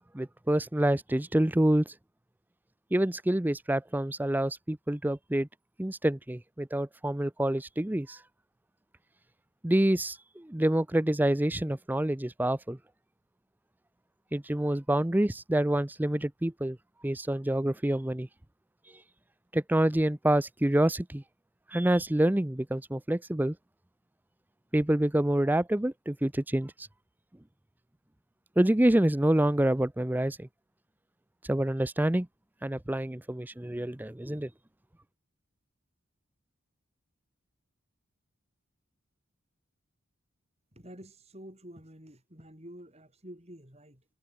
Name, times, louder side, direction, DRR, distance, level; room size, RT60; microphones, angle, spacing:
voice 1, 0.1-1.9 2.9-5.5 5.8-8.2 9.6-12.8 14.3-16.8 17.0-18.3 19.5-21.2 21.7-23.6 24.7-26.9 28.6-30.5 31.5-32.3 32.6-34.5, right 1 dB, 10° right, 0.5 m, -27 dB
voice 2, 40.7-44.1, equal, 30° right, 6.8 m, -49 dB
head